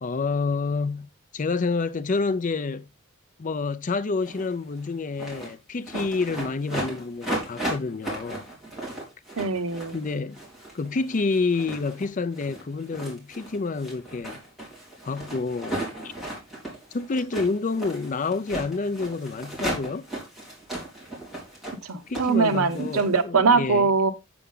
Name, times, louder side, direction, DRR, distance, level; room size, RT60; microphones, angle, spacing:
voice 1, 0.0-2.9 3.4-8.4 9.9-10.4 10.7-14.4 15.0-16.1 16.9-20.1 22.1-23.9, left 4 dB, 35° left, 0.5 m, -28 dB
sound 1, 4.3-4.5 4.8-5.5 5.9-23.2, right 1 dB, ahead, 3.3 m, -36 dB
voice 2, 9.4-10.0 21.8-24.1, right 4 dB, 85° right, 0.8 m, -22 dB
8.4 x 6.9 x 3.7 m
head